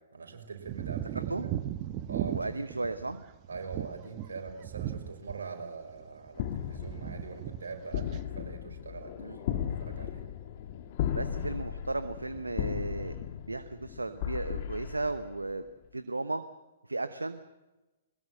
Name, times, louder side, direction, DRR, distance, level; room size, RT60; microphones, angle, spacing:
voice 1, 0.1-1.3 2.0-2.5 3.5-10.2, right 4 dB, 75° right, 3 dB, 5.4 m, -43 dB
sound 1, 0.7-5.6 5.9-6.5 6.8-7.6 7.9-8.2, right 12 dB, 35° right, 1.3 m, -37 dB
voice 2, 1.1-1.5 2.3-3.2 9.2-9.4 11.1-13.1 13.5-15.6 15.9-16.4 16.8-17.4, right 2 dB, 90° right, 11 dB, 1.0 m, -35 dB
sound 2, 6.3-15.7, left 9 dB, 45° left, 1.8 m, -36 dB
22.0 x 20.5 x 7.7 m, 1.1 s
figure-of-eight pair, 120°, 0 cm